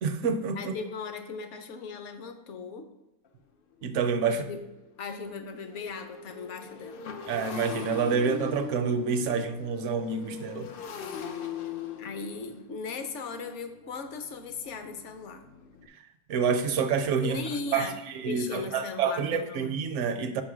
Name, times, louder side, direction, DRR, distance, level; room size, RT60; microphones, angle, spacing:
voice 1, 0.0-0.7 3.8-4.4 7.3-10.7 16.3-17.4 17.7-20.4, right 5 dB, 65° right, 8 dB, 0.8 m, -28 dB
voice 2, 0.6-2.9 4.2-4.6 5.0-7.0 12.0-15.4 17.2-19.7, left 4 dB, 60° left, 8 dB, 0.9 m, -38 dB
Motorcycle, 3.3-3.4 3.8-4.0 4.3-15.9, left 6 dB, 80° left, 0.4 m, -41 dB
5.2 x 5.2 x 4.9 m, 1.0 s
omnidirectional pair, 1.6 m